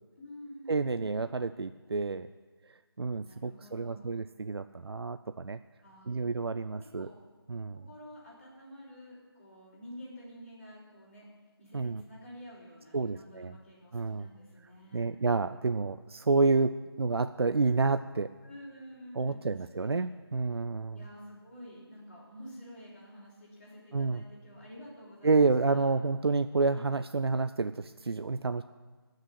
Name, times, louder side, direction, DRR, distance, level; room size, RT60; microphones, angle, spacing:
voice 1, 0.2-1.1 3.2-4.2 5.8-6.2 6.8-7.1 7.7-11.2 11.6-15.0 18.4-20.1 20.9-26.0, equal, 25° left, -9 dB, 4.9 m, -49 dB
voice 2, 0.7-2.3 3.0-5.6 6.1-7.1 7.5-7.8 11.7-12.0 12.9-13.6 13.9-14.3 14.9-18.3 19.2-21.0 23.9-24.2 25.2-28.6, right 3 dB, 70° right, 11 dB, 0.5 m, -29 dB
14.0 x 6.6 x 9.9 m, 1.4 s
figure-of-eight pair, 175°, 13 cm